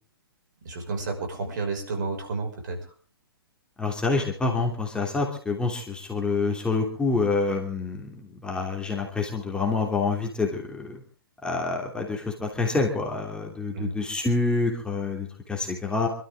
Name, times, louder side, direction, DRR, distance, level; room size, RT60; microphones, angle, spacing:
voice 1, 0.6-2.8 13.7-13.9, right 3 dB, 50° right, 4 dB, 5.8 m, -31 dB
voice 2, 3.8-11.0 11.4-16.1, left 3 dB, 5° left, 0 dB, 2.9 m, -27 dB
26.5 x 13.0 x 3.7 m, 0.39 s
figure-of-eight pair, 120°, 12 cm